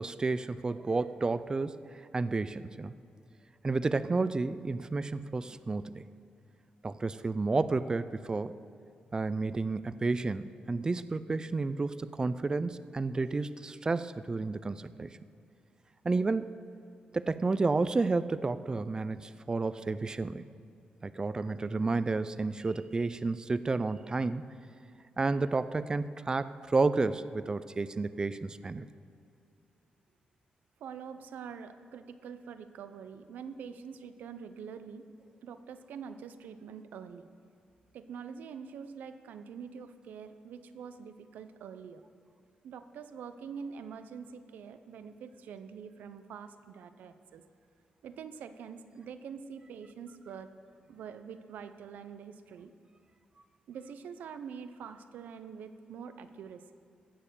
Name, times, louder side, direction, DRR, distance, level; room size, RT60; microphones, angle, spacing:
voice 1, 0.0-1.8 2.1-2.9 3.6-6.0 6.8-8.6 9.1-15.2 16.0-16.6 17.1-20.4 21.0-24.4 25.2-28.9, right 3 dB, 25° right, 14 dB, 0.4 m, -31 dB
voice 2, 30.8-35.1 35.4-37.3 37.9-42.0 42.6-47.4 48.0-50.5 50.9-52.7 53.7-56.7, right 6 dB, 85° right, 10 dB, 0.7 m, -45 dB
16.5 x 6.8 x 6.8 m, 2.5 s
cardioid pair, 90°, 3 cm